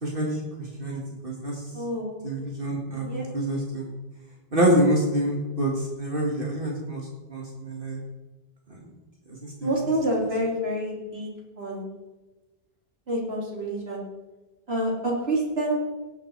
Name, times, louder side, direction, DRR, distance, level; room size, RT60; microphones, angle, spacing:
voice 1, 0.0-1.6 2.2-3.9 4.5-8.0 8.7-8.8 9.3-9.7, right 1 dB, 60° right, -1 dB, 2.3 m, -27 dB
voice 2, 1.7-2.2 2.9-3.3 9.6-11.9 13.1-14.0 14.7-15.8, right 1 dB, 75° right, -3 dB, 3.4 m, -28 dB
18.0 x 8.4 x 4.7 m, 1.2 s
omnidirectional pair, 1.0 m